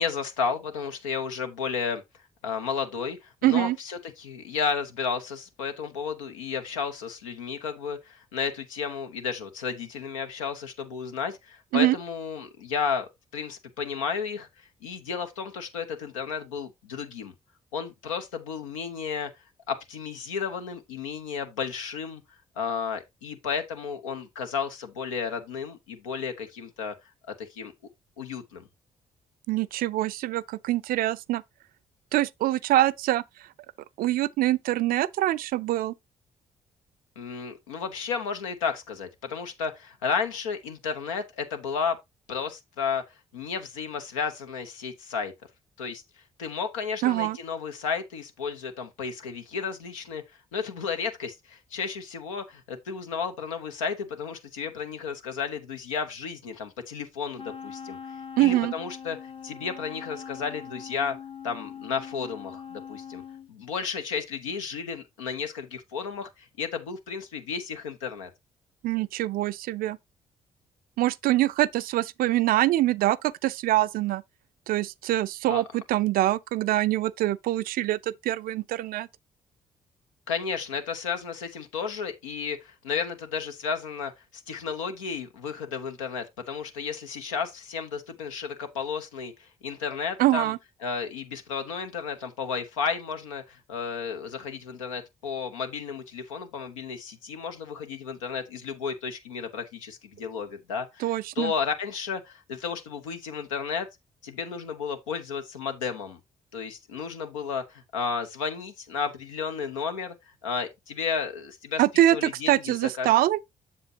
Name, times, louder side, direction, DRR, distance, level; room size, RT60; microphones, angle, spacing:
voice 1, 0.0-2.0 2.4-14.5 14.8-17.3 17.7-19.3 19.7-22.2 22.6-26.9 27.3-27.7 28.2-28.6 37.2-42.0 42.3-43.0 43.3-45.3 45.8-46.0 46.4-50.2 50.5-58.0 58.4-61.2 61.4-63.2 63.5-68.3 75.5-75.6 80.3-90.5 90.8-103.9 104.2-106.2 106.5-110.1 110.4-111.8 112.1-112.6 113.0-113.1, left 6 dB, 85° left, 0.8 m, -33 dB
voice 2, 3.4-3.8 11.7-12.0 29.5-31.4 32.1-33.2 34.0-35.9 47.0-47.4 58.4-58.7 68.8-70.0 71.0-74.2 74.7-79.1 90.2-90.6 101.0-101.5 111.8-112.2 112.5-113.4, right 15 dB, 65° right, 0.4 m, -24 dB
Wind instrument woodwind instrument, 57.4-63.5, left 7 dB, 35° left, 0.8 m, -41 dB
7.6 x 6.8 x 2.7 m
hypercardioid pair, 40°, 16 cm